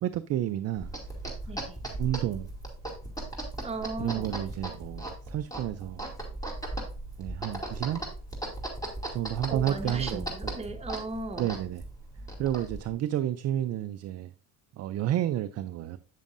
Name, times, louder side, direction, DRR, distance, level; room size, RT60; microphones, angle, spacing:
voice 1, 0.0-0.9 2.0-2.5 4.0-6.0 7.2-8.0 9.1-10.5 11.4-11.8 12.4-14.3 14.8-16.0, right 12 dB, 40° right, 0.4 m, -31 dB
sound 1, 0.8-12.9, right 1 dB, 10° left, 2.4 m, -37 dB
voice 2, 1.5-1.8 3.6-4.4 9.5-11.5, right 2 dB, 15° right, 1.1 m, -36 dB
8.3 x 7.0 x 2.6 m
supercardioid pair, 95°, 38 cm